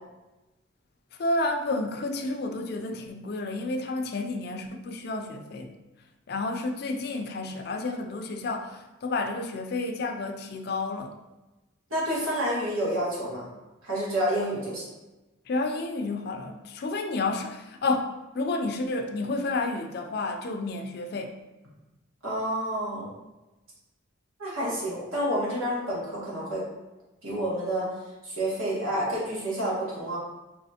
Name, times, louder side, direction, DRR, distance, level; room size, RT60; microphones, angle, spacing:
voice 1, 1.2-5.8 6.3-11.2 15.5-21.4, left 2 dB, 50° left, 4 dB, 0.3 m, -30 dB
voice 2, 11.9-13.5 13.8-14.8 22.2-23.1 24.4-26.7 27.2-27.9 28.2-30.2, equal, 90° right, -6 dB, 1.5 m, -29 dB
4.2 x 3.0 x 2.7 m, 1.1 s
head